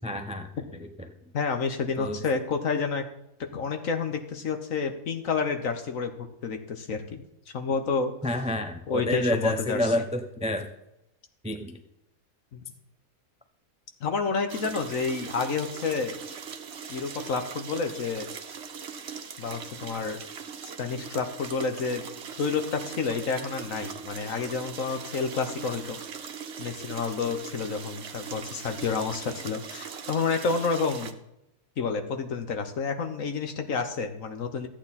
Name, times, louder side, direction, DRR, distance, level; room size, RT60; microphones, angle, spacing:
voice 1, 0.0-0.9 2.0-2.2 8.2-10.7 11.4-11.8, left 1 dB, 5° right, 6 dB, 0.5 m, -29 dB
voice 2, 1.3-3.1 3.5-6.1 6.4-7.2 7.5-8.1 8.9-9.8 12.5-12.6 14.0-16.2 16.9-18.3 19.4-20.2 20.8-22.0 22.4-26.0 26.6-31.1 31.8-34.7, left 5 dB, 60° left, 6 dB, 1.4 m, -29 dB
sound 1, 14.5-31.1, right 6 dB, 50° right, 1.0 m, -40 dB
14.0 x 8.8 x 4.2 m, 0.84 s
omnidirectional pair, 1.7 m